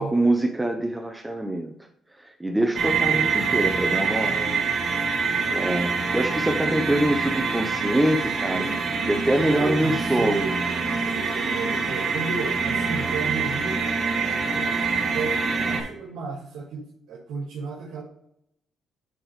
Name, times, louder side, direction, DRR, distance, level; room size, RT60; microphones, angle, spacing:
voice 1, 0.0-1.7 2.2-4.6 5.5-10.5, right 1 dB, 10° right, 4 dB, 0.8 m, -25 dB
sound 1, 2.8-15.8, right 5 dB, 50° right, 2.0 m, -25 dB
voice 2, 9.4-13.8 14.5-18.0, right 4 dB, 85° right, -4 dB, 2.0 m, -34 dB
10.0 x 5.0 x 3.2 m, 0.75 s
cardioid pair, 90°, 0 cm